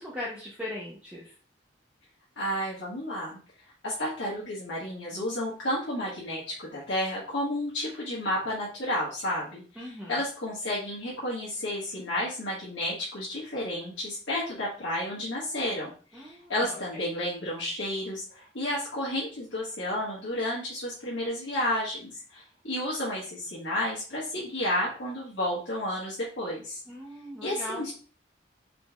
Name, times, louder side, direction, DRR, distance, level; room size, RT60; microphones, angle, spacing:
voice 1, 0.0-1.3 9.8-10.1 16.1-16.5 26.9-27.9, left 1 dB, 5° right, -5 dB, 0.7 m, -39 dB
voice 2, 2.4-3.4 3.8-26.8 27.4-27.9, left 1 dB, 80° left, -7 dB, 1.4 m, -31 dB
4.1 x 3.9 x 2.3 m, 0.39 s
head